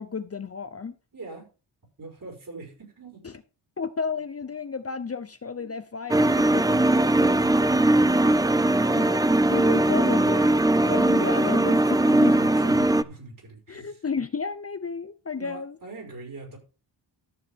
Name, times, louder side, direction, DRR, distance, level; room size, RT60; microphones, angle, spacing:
voice 1, 0.0-0.9 3.8-6.6 8.9-9.2 9.5-12.3 13.7-15.8, left 5 dB, 35° left, 0.8 m, -32 dB
voice 2, 1.1-1.5 2.0-3.2 5.6-5.7 12.0-14.0 15.4-16.6, right 3 dB, 50° right, 5.5 m, -43 dB
sound 1, 6.1-13.0, right 1 dB, 10° right, 0.4 m, -20 dB
13.0 x 7.1 x 3.7 m
wide cardioid pair, 100°, 43 cm